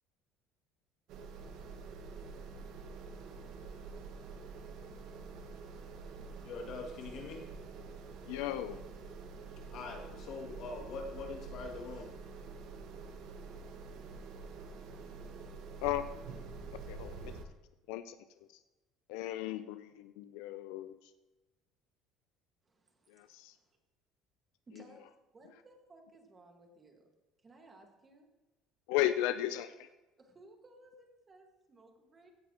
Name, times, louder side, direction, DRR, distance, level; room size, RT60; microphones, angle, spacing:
sound 1, 1.1-17.4, right 4 dB, 65° right, 1.2 m, -47 dB
voice 1, 6.4-7.4 9.7-12.1, left 3 dB, 55° left, 1 dB, 2.3 m, -43 dB
voice 2, 8.3-8.8 15.8-16.1 16.9-17.3 17.9-18.2 19.1-21.1 23.1-23.5 28.9-29.9, left 13 dB, 85° left, 11 dB, 0.5 m, -35 dB
voice 3, 22.6-23.8 24.7-25.0 25.3-27.1 27.4-28.3 29.1-29.2 30.2-32.3, right 2 dB, 25° right, 3 dB, 1.7 m, -59 dB
16.0 x 9.4 x 3.0 m, 1.1 s
cardioid pair, 135°, 0 cm